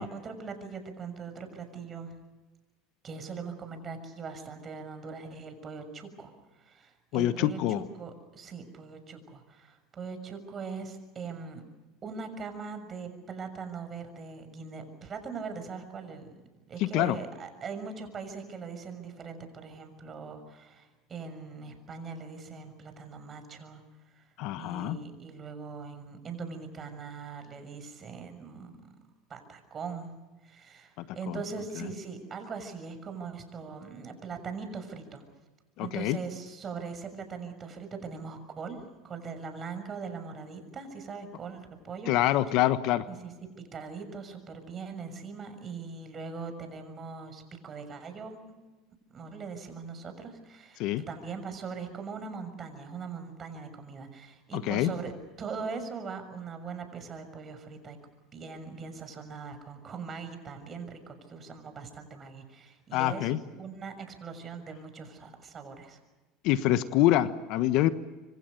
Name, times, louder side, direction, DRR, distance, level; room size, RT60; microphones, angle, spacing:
voice 1, 0.0-2.1 3.0-11.6 12.0-16.4 16.7-23.8 24.1-24.3 24.6-28.9 29.3-30.1 30.4-35.2 35.8-42.1 43.1-43.3 43.7-48.6 49.1-58.0 58.3-63.3 63.6-66.0, right 5 dB, 35° right, 8 dB, 6.5 m, -41 dB
voice 2, 7.1-7.8 16.8-17.2 24.4-25.0 31.0-31.4 31.8-31.9 35.8-36.2 42.1-43.0 50.8-51.0 54.6-54.9 62.9-63.4 66.4-67.9, left 14 dB, 65° left, 12 dB, 1.3 m, -26 dB
26.5 x 25.0 x 6.8 m, 1.2 s
hypercardioid pair, 90°, 0 cm